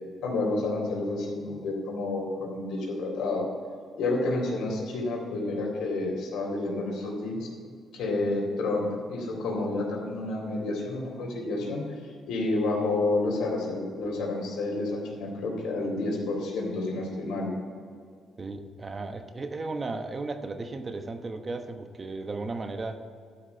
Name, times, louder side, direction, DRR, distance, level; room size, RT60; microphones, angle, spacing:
voice 1, 0.2-3.5 4.0-7.5 7.9-11.8 12.3-17.5, left 2 dB, 80° left, -1 dB, 3.6 m, -29 dB
voice 2, 18.4-23.0, right 3 dB, 30° right, 7 dB, 1.0 m, -35 dB
13.0 x 5.9 x 8.3 m, 2.2 s
cardioid pair, 90°, 0 cm